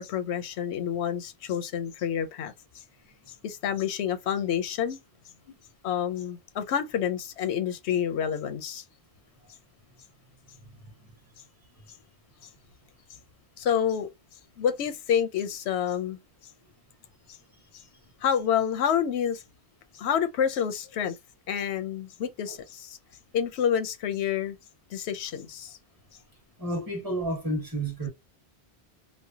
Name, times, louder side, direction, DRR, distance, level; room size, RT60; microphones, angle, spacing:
voice 1, 0.0-2.5 3.4-5.0 5.8-8.8 13.6-14.1 14.6-16.2 18.2-19.4 19.9-21.2 21.5-23.0 23.3-24.6 24.9-25.8, left 8 dB, 90° left, 0.9 m, -28 dB
voice 2, 26.6-28.1, right 1 dB, 20° right, 1.1 m, -31 dB
3.2 x 2.1 x 2.7 m
omnidirectional pair, 1.1 m